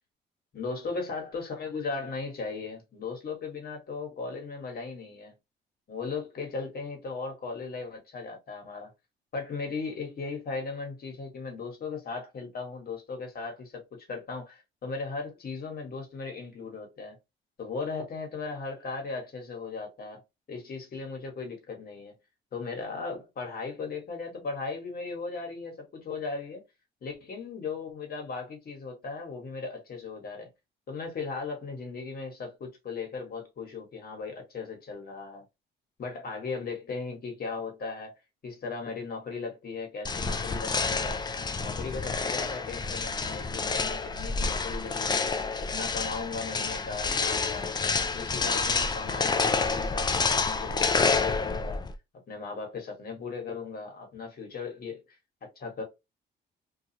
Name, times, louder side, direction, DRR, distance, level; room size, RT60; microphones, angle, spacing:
voice 1, 0.5-5.4 5.9-8.9 9.3-13.8 14.1-17.2 17.6-20.2 20.5-22.2 22.5-26.6 27.0-30.5 30.9-35.4 36.0-38.1 38.4-41.2 41.6-47.7 48.1-51.8 52.3-55.0 55.6-55.8, left 4 dB, 50° left, 1.3 m, -37 dB
sound 1, 40.0-51.9, left 4 dB, 20° left, 0.3 m, -28 dB
2.4 x 2.3 x 2.8 m
cardioid pair, 90°, 20 cm